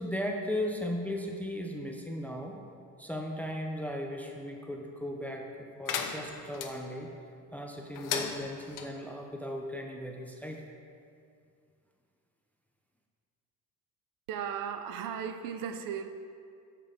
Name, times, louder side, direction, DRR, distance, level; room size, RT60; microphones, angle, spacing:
voice 1, 0.0-2.6 3.0-7.1 7.5-10.6, left 1 dB, 5° left, 1 dB, 0.6 m, -36 dB
sound 1, 5.9-6.7 7.9-8.9, left 7 dB, 60° left, 0.8 m, -35 dB
voice 2, 14.3-16.1, right 8 dB, 65° right, 8 dB, 0.6 m, -36 dB
6.7 x 5.7 x 5.0 m, 2.3 s
cardioid pair, 100°, 35 cm